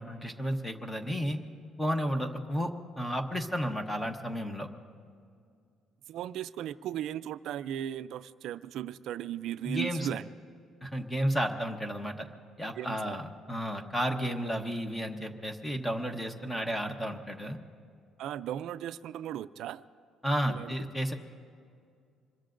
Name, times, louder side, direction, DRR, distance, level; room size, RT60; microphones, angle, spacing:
voice 1, 0.0-1.4 1.8-4.7 9.6-10.1 10.8-12.3 12.6-17.6 20.2-21.1, equal, 10° left, 5 dB, 1.0 m, -32 dB
voice 2, 6.1-10.3 12.7-13.2 18.2-19.8 20.4-20.8, right 11 dB, 70° right, 14 dB, 0.4 m, -37 dB
26.0 x 22.0 x 2.6 m, 2.3 s
cardioid pair, 140°, 0 cm